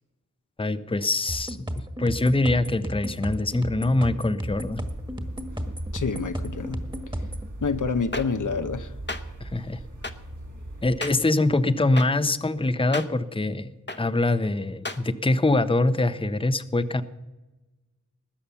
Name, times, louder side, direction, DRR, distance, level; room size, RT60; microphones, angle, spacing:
voice 1, 0.6-1.6 2.0-4.8 9.4-9.8 10.8-13.7 14.0-17.0, left 2 dB, 15° left, 0.7 m, -24 dB
sound 1, 1.3-7.5, equal, 15° right, 1.6 m, -33 dB
sound 2, 4.5-11.0, right 1 dB, 70° right, 2.7 m, -39 dB
voice 2, 5.9-6.8 7.6-8.9, left 4 dB, 70° left, 0.8 m, -27 dB
sound 3, 8.1-8.2 9.1-9.2 10.0-10.1 11.0-11.1 12.0-12.1 12.9-13.1 13.9-14.0 14.8-15.0, left 2 dB, 35° left, 1.0 m, -31 dB
20.0 x 8.5 x 7.0 m
wide cardioid pair, 55°, 32 cm